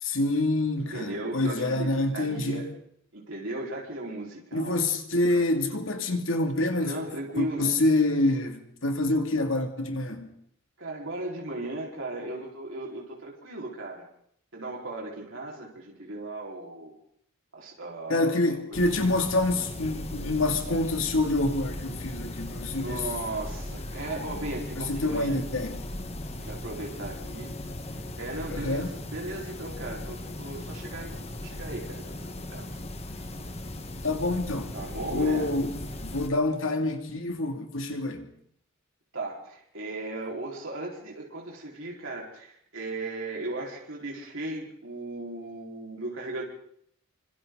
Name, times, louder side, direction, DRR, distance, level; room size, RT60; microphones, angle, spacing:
voice 1, 0.0-2.6 4.5-7.0 7.4-10.3 18.1-23.1 24.8-25.8 28.5-28.9 34.0-34.7 35.1-38.3, left 2 dB, 65° left, 2.6 m, -27 dB
voice 2, 0.8-2.7 3.1-4.8 5.3-5.4 6.8-7.8 10.8-14.1 14.5-16.9 17.5-18.8 22.3-22.4 22.8-25.4 26.2-27.6 27.9-32.7 34.7-35.5 39.1-46.4, right 2 dB, 65° right, 4.6 m, -37 dB
sound 1, 18.7-36.3, left 1 dB, 30° left, 1.5 m, -38 dB
27.5 x 25.5 x 4.0 m
head